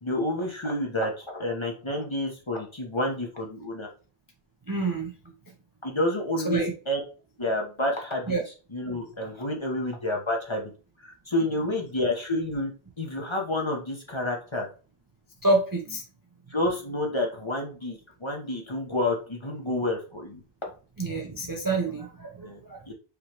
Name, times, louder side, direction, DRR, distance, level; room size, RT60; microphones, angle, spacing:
voice 1, 0.0-3.9 5.8-7.0 7.4-10.7 11.0-12.7 13.0-14.7 16.5-20.7 22.4-22.6 22.9-23.0, left 1 dB, 30° left, 1 dB, 0.9 m, -29 dB
voice 2, 4.7-5.1 6.5-6.7 8.3-8.4 15.4-16.0 21.0-22.8, right 2 dB, 25° right, 1 dB, 0.6 m, -27 dB
5.1 x 3.0 x 3.0 m, 0.36 s
omnidirectional pair, 1.1 m